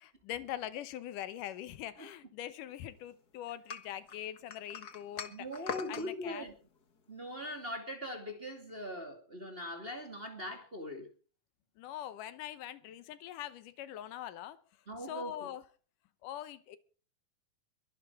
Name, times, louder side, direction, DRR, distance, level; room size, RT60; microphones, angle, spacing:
voice 1, 0.0-6.5 11.8-14.6 15.0-15.6 16.2-16.8, left 11 dB, 80° left, 2.5 m, -43 dB
sound 1, 3.7-6.1, left 6 dB, 45° left, 1.4 m, -42 dB
voice 2, 5.3-6.5 7.1-11.1 14.9-15.5, equal, 20° right, 2.3 m, -41 dB
23.0 x 11.0 x 4.7 m
omnidirectional pair, 3.7 m